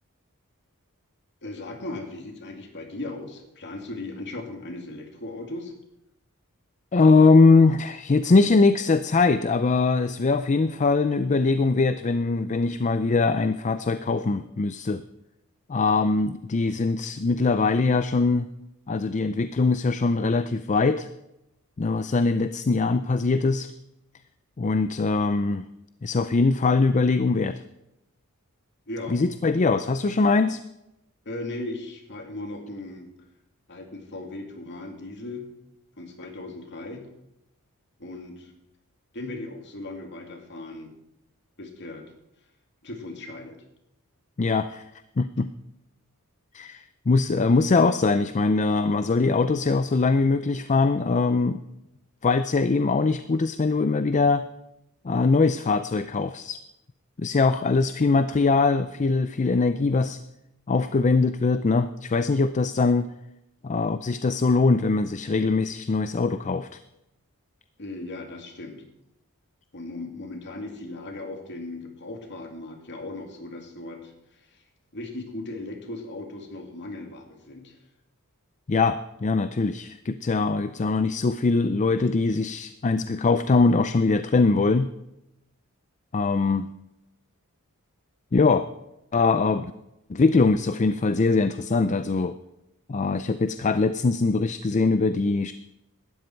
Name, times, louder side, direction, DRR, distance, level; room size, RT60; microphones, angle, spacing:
voice 1, 1.4-5.7 28.9-29.2 31.2-33.1 33.7-35.5 36.0-37.1 38.0-38.5 39.1-40.9 41.6-42.0 42.8-43.6 67.8-68.8 69.7-74.6 74.9-77.8, left 2 dB, 50° left, 3 dB, 2.5 m, -37 dB
voice 2, 6.9-15.0 15.7-18.5 18.9-21.1 21.8-23.7 24.6-25.7 26.0-27.6 29.1-30.6 44.4-44.8 45.2-45.5 46.5-51.6 52.2-54.5 55.0-56.6 57.2-60.2 60.7-63.1 63.6-66.8 78.7-84.9 86.1-86.7 88.3-88.7 89.1-89.7 90.1-92.4 92.9-95.5, left 3 dB, 35° left, 11 dB, 0.4 m, -22 dB
17.5 x 13.0 x 4.5 m, 0.89 s
head